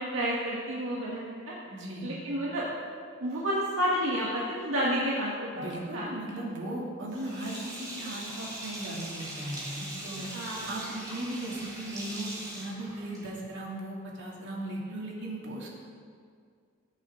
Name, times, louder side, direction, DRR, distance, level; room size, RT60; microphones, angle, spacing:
voice 1, 0.0-1.5 2.0-2.7 3.2-6.1 10.3-10.7, equal, 80° right, -6 dB, 1.8 m, -30 dB
voice 2, 1.7-2.1 5.5-10.3 10.7-15.7, right 1 dB, 65° right, -4 dB, 2.8 m, -37 dB
Sink (filling or washing), 7.1-13.5, right 1 dB, 20° right, 3.3 m, -41 dB
20.0 x 8.5 x 3.9 m, 2.2 s
head